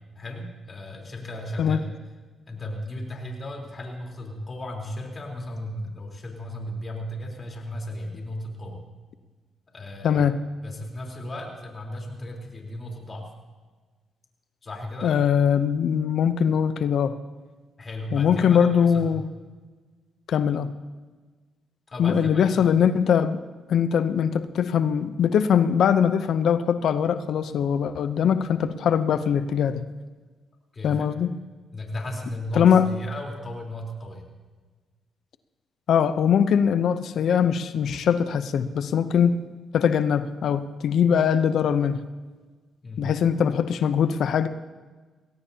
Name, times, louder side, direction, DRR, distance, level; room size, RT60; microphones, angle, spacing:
voice 1, 0.2-1.9 2.5-8.8 9.7-10.2 10.6-13.2 14.6-15.1 17.8-19.1 21.9-22.7 30.7-31.1 31.7-34.2 42.8-43.1, left 1 dB, 40° left, 0 dB, 3.7 m, -35 dB
voice 2, 10.0-10.4 15.0-17.2 18.1-19.2 20.3-20.7 22.0-23.4 23.7-29.8 30.8-31.4 32.6-32.9 35.9-39.4 39.7-42.0 43.0-44.5, left 8 dB, 70° left, 12 dB, 0.6 m, -21 dB
21.5 x 17.0 x 2.8 m, 1.4 s
supercardioid pair, 65°, 0 cm